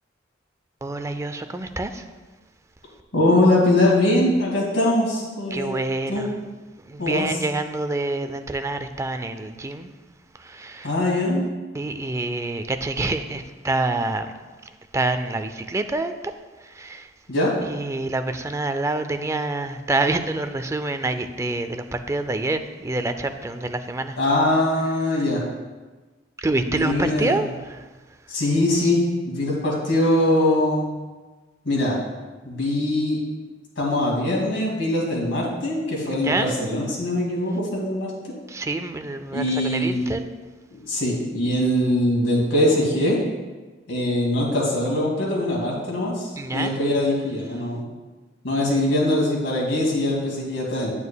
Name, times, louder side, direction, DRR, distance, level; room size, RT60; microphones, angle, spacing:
voice 1, 0.8-2.0 5.5-6.3 6.9-9.9 10.4-10.9 11.7-14.3 14.9-16.1 16.7-17.1 17.6-24.2 26.4-27.8 36.2-36.7 38.5-40.2 46.4-46.8, right 2 dB, 15° right, 8 dB, 0.4 m, -27 dB
voice 2, 3.1-5.8 6.1-6.3 7.0-7.4 10.8-11.4 17.3-17.5 24.2-25.4 26.7-27.4 28.3-30.9 31.6-32.0 32.4-33.2 33.8-38.4 39.3-40.1 40.7-43.2 43.9-47.8 48.4-50.9, left 1 dB, 80° left, -3 dB, 2.3 m, -22 dB
8.9 x 8.4 x 2.3 m, 1.3 s
head